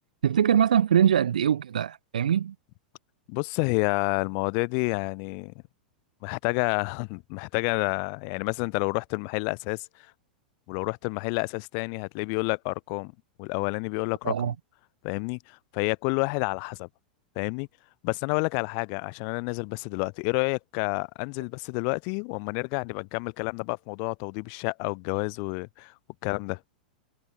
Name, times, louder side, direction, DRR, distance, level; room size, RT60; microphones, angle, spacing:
voice 1, 0.2-2.5 14.3-14.5, right 9 dB, 65° right, 0.6 m, -22 dB
voice 2, 3.3-5.5 6.2-10.1 10.7-13.1 13.4-14.6 15.0-16.9 17.4-17.7 18.0-25.9 26.2-26.6, left 40 dB or more, 45° left, 1.0 m, -29 dB
figure-of-eight pair, 90°, 5 cm